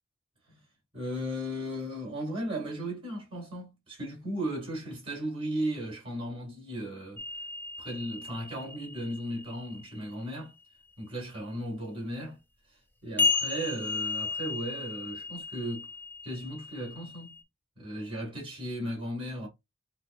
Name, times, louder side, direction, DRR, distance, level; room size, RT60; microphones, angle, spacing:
voice 1, 0.9-7.2 7.8-10.5 11.0-12.4 13.0-15.9 16.2-17.4 17.8-19.5, equal, 25° right, 2.4 m, -36 dB
sound 1, 7.2-10.3 13.2-17.4, left 4 dB, 10° left, 0.4 m, -34 dB
5.6 x 2.4 x 2.6 m
head